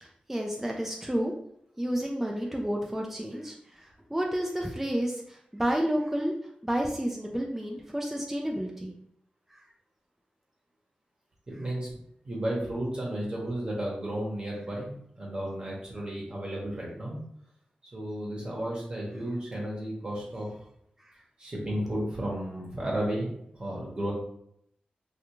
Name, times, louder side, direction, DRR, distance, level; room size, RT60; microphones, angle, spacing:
voice 1, 0.0-1.3 1.8-6.3 6.6-8.9 9.5-9.6 21.0-21.1, equal, 10° right, 0 dB, 0.3 m, -31 dB
voice 2, 11.5-11.9 12.2-17.2 17.9-20.6 21.4-24.1, right 1 dB, 30° right, -3 dB, 0.9 m, -33 dB
2.4 x 2.3 x 2.9 m, 0.70 s
wide cardioid pair, 80°, 3 cm